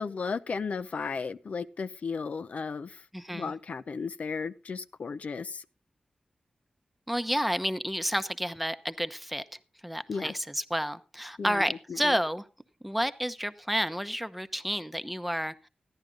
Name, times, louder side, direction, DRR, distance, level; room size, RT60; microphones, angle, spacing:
voice 1, 0.0-3.0 3.3-5.6 10.1-10.3 11.4-12.2, left 5 dB, 70° left, 0.5 m, -35 dB
voice 2, 3.1-3.5 7.1-9.4 9.8-12.4 12.8-15.7, equal, 5° right, 0.8 m, -30 dB
14.5 x 10.5 x 3.8 m
cardioid pair, 65°, 2 cm